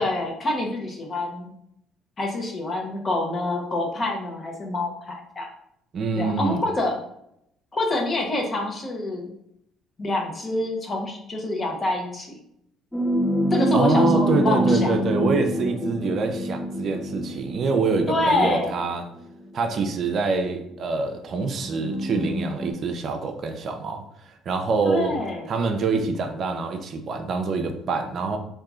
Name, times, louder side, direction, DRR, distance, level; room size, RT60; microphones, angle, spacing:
voice 1, 0.0-1.5 2.2-5.5 6.2-7.0 7.7-9.3 10.0-12.4 13.5-15.0 18.1-18.7 24.8-25.5, left 2 dB, 35° left, 1 dB, 1.1 m, -26 dB
voice 2, 5.9-6.6 13.7-19.1 19.5-25.1 25.5-28.4, right 4 dB, 55° right, 6 dB, 0.5 m, -25 dB
sound 1, 12.9-18.8 19.7-19.8 21.6-22.7, equal, 10° left, 0.6 m, -25 dB
3.6 x 2.8 x 3.6 m, 0.76 s
supercardioid pair, 70°, 0 cm